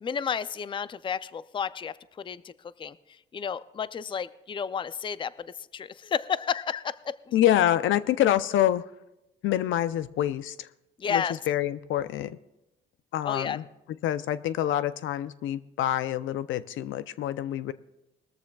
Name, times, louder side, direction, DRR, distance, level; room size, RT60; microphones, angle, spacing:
voice 1, 0.0-2.5 2.8-3.0 3.3-7.2 11.0-11.4 13.2-13.6, left 7 dB, 25° left, 16 dB, 0.4 m, -31 dB
voice 2, 7.3-8.8 9.4-10.7 11.1-12.4 13.1-13.6 14.0-17.7, left 12 dB, 80° left, 15 dB, 0.6 m, -26 dB
20.0 x 14.0 x 2.3 m, 0.95 s
cardioid pair, 90°, 20 cm